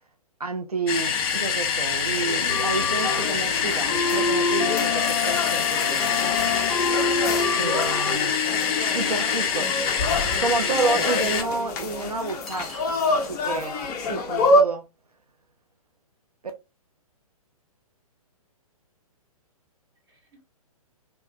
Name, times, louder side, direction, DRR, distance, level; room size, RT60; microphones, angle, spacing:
voice 1, 0.4-6.4 7.6-8.4 8.9-9.7 10.4-12.7 13.1-14.9, right 3 dB, 80° right, 0.6 m, -30 dB
sound 1, 0.9-11.4, left 6 dB, 40° left, 0.8 m, -26 dB
sound 2, 2.1-14.6, left 3 dB, 15° left, 0.4 m, -26 dB
voice 2, 7.4-7.8 8.4-9.4 20.1-20.5, equal, 30° right, 1.8 m, -41 dB
sound 3, 10.0-10.1 10.6-11.1 12.5-13.5, left 2 dB, ahead, 0.9 m, -41 dB
3.4 x 2.7 x 2.6 m
figure-of-eight pair, 120°, 19 cm